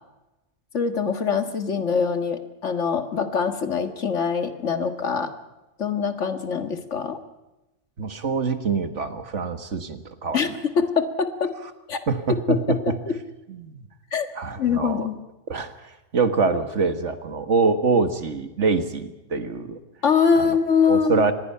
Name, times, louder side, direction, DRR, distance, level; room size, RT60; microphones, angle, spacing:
voice 1, 0.7-5.3 5.8-7.2 10.3-11.5 11.9-12.0 12.3-13.2 14.1-14.3 14.6-15.2 20.0-21.3, left 6 dB, 85° left, 8 dB, 2.1 m, -23 dB
voice 2, 8.0-10.4 12.1-12.8 13.5-13.8 14.4-15.1 15.5-19.8 20.4-20.6 20.9-21.3, right 4 dB, 80° right, 9 dB, 1.9 m, -25 dB
25.5 x 20.5 x 5.7 m, 1.0 s
omnidirectional pair, 1.2 m